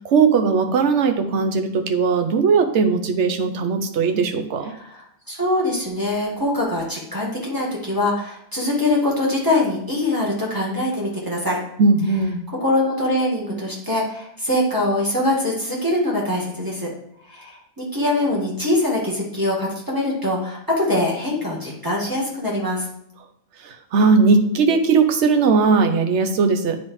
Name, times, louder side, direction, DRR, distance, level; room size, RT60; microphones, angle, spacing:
voice 1, 0.0-4.7 11.8-12.4 23.6-26.8, right 4 dB, 60° right, 6 dB, 0.9 m, -18 dB
voice 2, 4.7-11.6 12.6-16.9 17.3-22.8, left 1 dB, 15° right, -4 dB, 1.7 m, -23 dB
9.1 x 4.1 x 3.1 m, 0.75 s
omnidirectional pair, 1.6 m